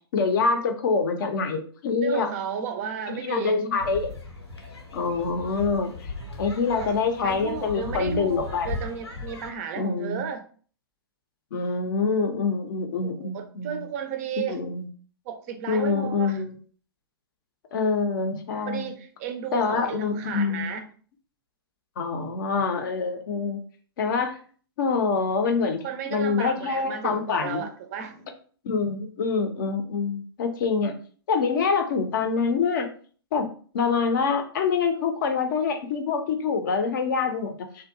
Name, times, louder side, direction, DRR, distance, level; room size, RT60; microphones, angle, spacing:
voice 1, 0.1-2.3 3.2-4.1 4.9-6.1 6.4-8.7 9.8-10.2 11.5-13.8 14.5-14.9 15.7-16.6 17.7-18.9 19.5-20.7 22.0-23.6 24.0-24.4 24.8-27.7 28.6-30.9 31.3-32.9 33.3-33.5 33.7-37.9, left 5 dB, 50° left, 6 dB, 0.5 m, -25 dB
voice 2, 2.0-3.6 6.8-6.9 7.2-10.4 13.0-14.6 15.3-16.4 18.7-20.9 25.8-28.3, right 7 dB, 35° right, 7 dB, 0.4 m, -33 dB
sound 1, 3.8-9.5, left 3 dB, 85° left, 0.7 m, -37 dB
2.6 x 2.2 x 2.6 m, 0.43 s
figure-of-eight pair, 115°, 13 cm